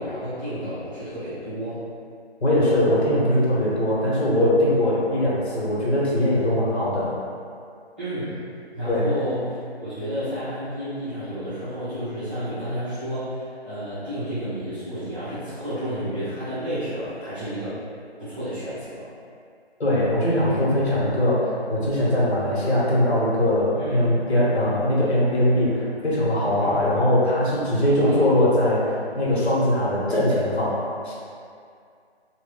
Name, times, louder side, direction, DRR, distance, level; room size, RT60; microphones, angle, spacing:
voice 1, 0.0-1.8 8.0-8.4 8.7-17.8 18.2-19.1 23.8-24.1 26.6-26.8 28.0-28.2, equal, 10° right, -19 dB, 0.6 m, -31 dB
voice 2, 2.4-7.1 8.9-9.1 19.8-31.1, left 1 dB, 75° left, -7 dB, 1.4 m, -21 dB
3.0 x 2.5 x 3.7 m, 2.3 s
figure-of-eight pair, 155°, 32 cm